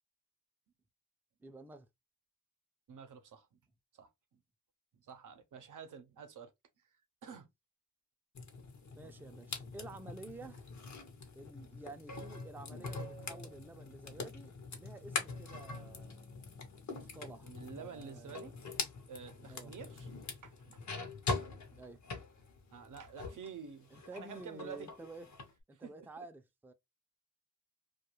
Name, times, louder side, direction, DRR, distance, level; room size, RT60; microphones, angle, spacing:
voice 1, 1.4-1.9 8.9-10.7 11.3-14.5 14.8-16.2 16.9-18.5 19.4-19.7 21.5-22.0 23.9-25.3 25.7-26.7, right 2 dB, 5° right, 0.4 m, -51 dB
voice 2, 2.9-3.5 3.9-4.1 5.1-6.5 7.2-7.5 9.0-9.1 9.6-9.7 17.4-18.5 19.1-20.8 21.3-21.5 22.7-24.9 25.7-26.2, right 6 dB, 85° right, 0.6 m, -49 dB
sound 1, 8.3-23.5 23.8-25.5, left 4 dB, 65° left, 0.8 m, -44 dB
2.3 x 2.3 x 2.9 m
wide cardioid pair, 80°, 30 cm